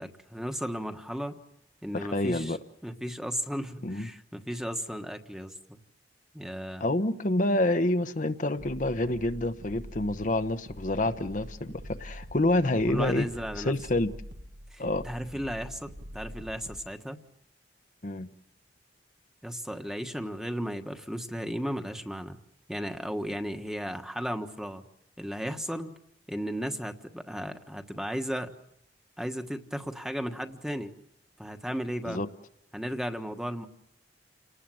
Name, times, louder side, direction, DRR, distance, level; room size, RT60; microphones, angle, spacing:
voice 1, 0.0-1.4 1.8-2.6 2.8-5.8 6.3-6.8 12.9-13.7 14.7-17.2 19.4-22.4 22.7-24.8 25.2-25.9 26.3-28.5 29.2-30.9 31.4-32.2 32.7-33.7, equal, 5° right, 1.3 m, -35 dB
voice 2, 1.9-2.6 3.8-4.1 6.8-13.3 13.6-14.1 14.8-15.0 18.0-18.3 32.1-32.3, left 1 dB, 45° left, 0.9 m, -27 dB
sound 1, 8.6-16.9, equal, 70° right, 1.6 m, -45 dB
29.5 x 19.0 x 7.8 m
head